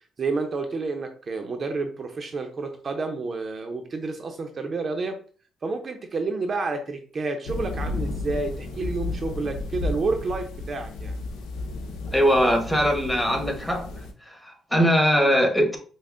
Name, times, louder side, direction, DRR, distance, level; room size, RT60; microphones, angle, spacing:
voice 1, 0.2-5.2 5.6-11.2, right 3 dB, 45° right, 0.5 m, -29 dB
sound 1, 7.5-14.1, left 2 dB, 90° left, 0.6 m, -33 dB
voice 2, 12.1-13.9 14.2-15.8, equal, 5° left, 1.0 m, -21 dB
5.3 x 2.1 x 2.4 m
cardioid pair, 90°, 0 cm